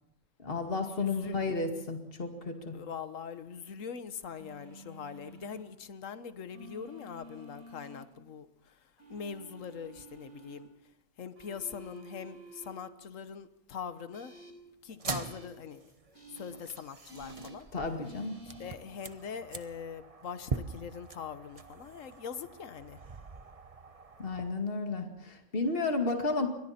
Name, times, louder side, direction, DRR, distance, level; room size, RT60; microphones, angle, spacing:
voice 1, 0.4-2.8 17.7-18.4 24.2-26.5, left 3 dB, 45° left, 4 dB, 2.4 m, -32 dB
voice 2, 1.0-1.4 2.7-8.7 9.1-10.7 11.2-14.4 14.8-15.9 16.3-17.7 18.4-23.0, left 6 dB, 70° left, 11 dB, 1.5 m, -42 dB
sound 1, 4.4-5.6 6.5-8.0 9.0-10.6 11.4-12.7 14.1-14.5 15.2-15.5 16.1-16.5 17.1-17.6 18.0-18.7, right 2 dB, 85° right, 4.6 m, -51 dB
sound 2, 14.9-24.5, right 4 dB, 30° right, 1.0 m, -43 dB
30.0 x 24.0 x 4.3 m, 0.82 s
omnidirectional pair, 1.4 m